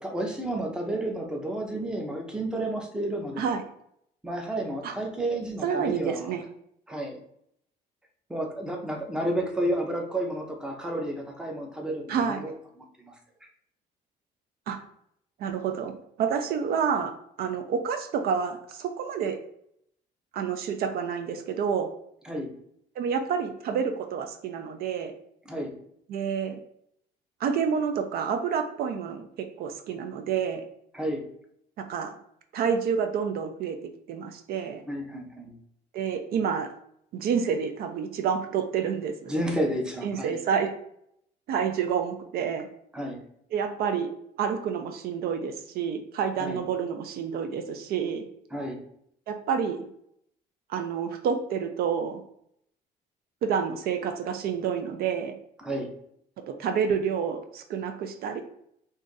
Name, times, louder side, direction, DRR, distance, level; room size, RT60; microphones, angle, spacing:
voice 1, 0.0-3.5 4.2-6.4 6.9-7.2 8.3-12.5 13.0-13.1 13.4-13.5 22.2-22.5 25.5-25.7 30.9-31.3 34.9-35.6 39.3-40.4 42.9-43.2 46.4-46.6 48.5-48.8 55.6-55.9, right 1 dB, 5° right, 2 dB, 0.6 m, -31 dB
voice 2, 5.6-6.4 12.1-12.4 14.7-14.8 15.4-17.1 17.4-19.4 20.3-21.9 23.0-25.1 26.1-26.6 27.4-30.6 31.8-32.1 32.5-34.8 35.9-36.7 37.1-39.3 40.0-40.7 41.5-42.7 43.5-44.1 44.4-48.2 49.3-49.8 50.7-52.2 53.4-55.3 56.5-58.4, right 7 dB, 65° right, 7 dB, 0.4 m, -29 dB
2.6 x 2.4 x 3.8 m, 0.72 s
cardioid pair, 110°, 17 cm